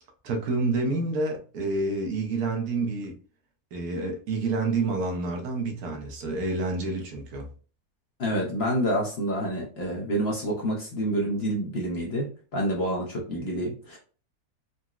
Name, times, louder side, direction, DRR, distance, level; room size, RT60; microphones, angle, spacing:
voice 1, 0.2-3.2 3.7-7.5, right 3 dB, 75° right, 1.2 m, -28 dB
voice 2, 8.2-14.0, equal, 55° left, 0.8 m, -28 dB
3.8 x 2.0 x 2.3 m
omnidirectional pair, 1.6 m